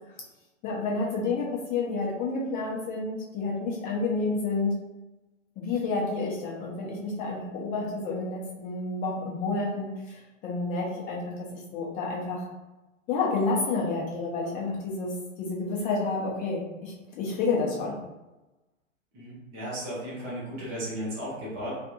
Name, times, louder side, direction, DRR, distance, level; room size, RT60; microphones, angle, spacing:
voice 1, 0.6-4.7 5.6-12.5 13.1-15.1 15.4-18.0, left 3 dB, 20° left, -3 dB, 0.7 m, -30 dB
voice 2, 19.1-21.8, equal, 5° right, -7 dB, 0.3 m, -35 dB
3.3 x 2.4 x 2.8 m, 1.0 s
figure-of-eight pair, 115°, 39 cm